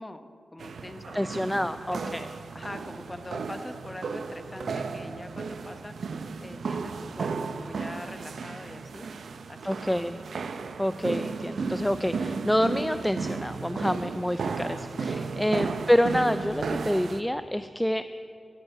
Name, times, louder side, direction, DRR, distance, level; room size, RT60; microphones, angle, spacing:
voice 1, 0.0-2.2 2.5-5.9 6.4-9.1 9.5-10.0 15.0-15.6, left 1 dB, 20° left, 9 dB, 0.8 m, -43 dB
sound 1, 0.6-17.2, right 4 dB, 85° right, 0.5 m, -34 dB
voice 2, 1.1-2.3 9.6-10.2 10.8-18.0, equal, 5° left, 11 dB, 0.3 m, -27 dB
13.0 x 9.0 x 6.7 m, 2.6 s
wide cardioid pair, 80°, 0 cm